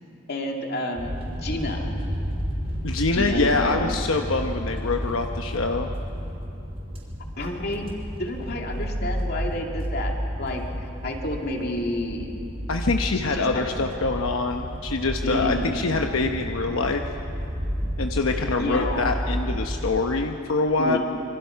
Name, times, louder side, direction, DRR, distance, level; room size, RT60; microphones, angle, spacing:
voice 1, 0.3-1.1 1.4-1.9 3.1-3.8 7.4-7.9 8.2-10.6 11.0-12.3 13.1-13.7 15.2-15.8 18.6-19.1 20.8-21.0, left 1 dB, 50° left, 1 dB, 2.5 m, -29 dB
sound 1, 0.9-20.0, equal, 30° right, 4.4 m, -31 dB
voice 2, 2.8-5.9 12.7-17.0 18.0-21.0, left 3 dB, 85° left, 4 dB, 1.0 m, -25 dB
26.5 x 24.0 x 5.8 m, 2.9 s
head